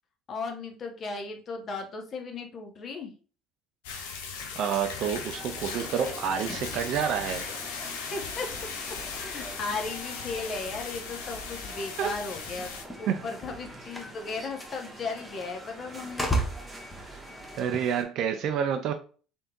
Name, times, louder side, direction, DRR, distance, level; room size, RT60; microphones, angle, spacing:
voice 1, 0.3-3.1 8.1-8.5 9.1-12.7 13.0-16.3, left 3 dB, 45° left, 3 dB, 0.9 m, -36 dB
sound 1, 3.8-12.8, left 5 dB, 75° left, 0.7 m, -38 dB
voice 2, 4.5-7.5 12.0-12.1 13.1-13.3 17.6-18.9, right 8 dB, 55° right, 7 dB, 0.4 m, -28 dB
sound 2, 5.3-18.0, right 1 dB, 10° right, 1.4 m, -46 dB
sound 3, 6.3-17.8, right 1 dB, 15° left, 1.0 m, -39 dB
3.5 x 3.4 x 2.8 m, 0.39 s
hypercardioid pair, 60°, 0 cm